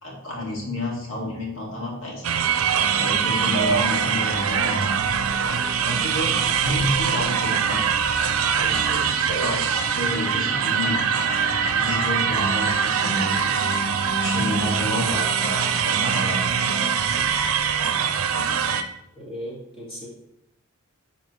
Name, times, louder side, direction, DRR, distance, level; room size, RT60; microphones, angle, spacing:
voice 1, 0.0-2.5 2.9-5.0 5.8-7.8 8.6-9.6 9.9-11.2 11.7-13.7 14.2-16.9, left 1 dB, 70° left, -3 dB, 2.2 m, -30 dB
sound 1, 2.2-18.8, right 6 dB, 85° right, 0.5 m, -23 dB
voice 2, 19.1-20.1, equal, 25° left, -4 dB, 2.1 m, -36 dB
11.0 x 4.1 x 3.1 m, 0.83 s
head